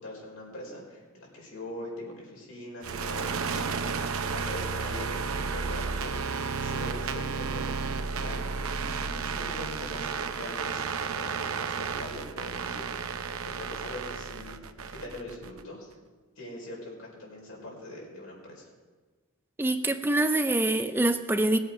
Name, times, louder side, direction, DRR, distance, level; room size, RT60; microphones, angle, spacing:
voice 1, 0.0-6.1 6.6-7.7 8.1-13.2 13.4-14.6 14.9-15.9 16.4-18.7, left 1 dB, 80° left, -3 dB, 4.7 m, -42 dB
sound 1, 2.8-15.6, right 5 dB, 85° right, 0.7 m, -32 dB
voice 2, 19.6-21.6, right 1 dB, 10° right, 8 dB, 0.5 m, -25 dB
19.0 x 8.0 x 5.0 m, 1.3 s
head